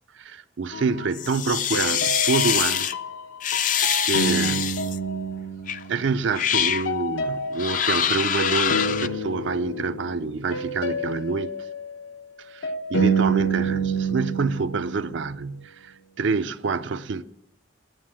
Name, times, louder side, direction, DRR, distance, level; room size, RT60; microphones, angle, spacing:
voice 1, 0.2-2.9 4.0-4.7 5.9-11.5 12.5-17.2, right 4 dB, 70° right, 0.5 m, -27 dB
sound 1, 0.7-1.3 1.7-6.3 6.5-15.3, right 2 dB, 80° left, 0.9 m, -29 dB
sound 2, 1.1-2.9 3.4-5.0 5.7-5.8 6.3-6.9 7.6-9.1, left 9 dB, 40° left, 0.4 m, -24 dB
9.6 x 9.2 x 7.4 m
head